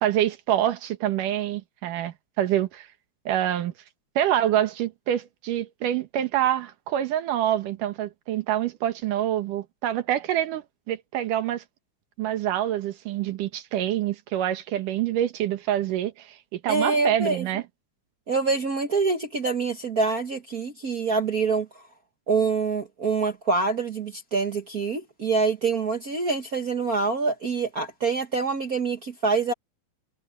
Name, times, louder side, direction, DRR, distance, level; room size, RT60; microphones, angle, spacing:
voice 1, 0.0-2.9 3.3-3.7 4.2-11.6 12.2-17.6, right 11 dB, 90° right, 2.9 m, -26 dB
voice 2, 16.7-17.5 18.3-21.7 22.3-29.5, right 4 dB, 55° right, 1.0 m, -25 dB
omnidirectional pair, 3.6 m